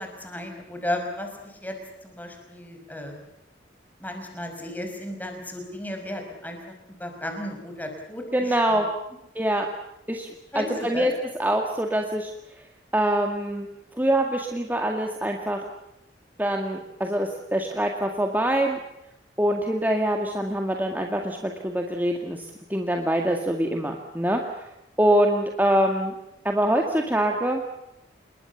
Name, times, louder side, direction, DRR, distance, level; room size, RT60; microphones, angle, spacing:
voice 1, 0.0-3.2 4.0-8.8 10.5-11.1, left 1 dB, 10° left, 4 dB, 5.4 m, -34 dB
voice 2, 8.3-8.9 9.4-9.7 10.1-10.3 10.5-11.1 11.4-12.3 12.9-13.7 14.0-15.6 16.4-18.8 19.4-24.6 25.0-26.1 26.4-27.6, right 1 dB, 10° right, 2 dB, 2.0 m, -24 dB
27.5 x 22.0 x 7.2 m, 0.86 s
head